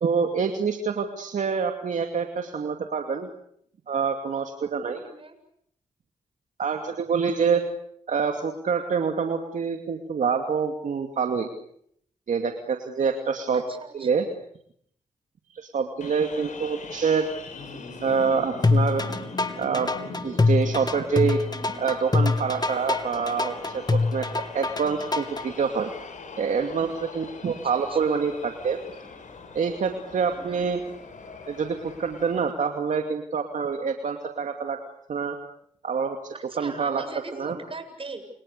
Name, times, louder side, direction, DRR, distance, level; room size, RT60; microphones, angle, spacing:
voice 1, 0.0-3.3 3.9-5.0 6.6-7.6 8.1-11.5 12.3-13.6 13.9-14.2 15.5-17.3 18.0-19.0 19.6-19.9 20.2-21.4 21.8-24.3 24.5-25.9 26.4-28.8 29.5-30.8 31.5-34.8 35.1-35.4 35.8-37.0 37.3-37.5, right 6 dB, 70° right, 4 dB, 2.6 m, -26 dB
voice 2, 5.0-5.4 13.5-14.1 27.7-28.0 30.3-30.6 36.5-38.2, right 3 dB, 40° right, 7 dB, 8.0 m, -40 dB
sound 1, 16.0-32.5, left 4 dB, 70° left, 6.4 m, -41 dB
sound 2, 18.6-25.4, left 3 dB, 30° left, 2.6 m, -24 dB
30.0 x 29.0 x 6.8 m, 0.70 s
cardioid pair, 55°, 13 cm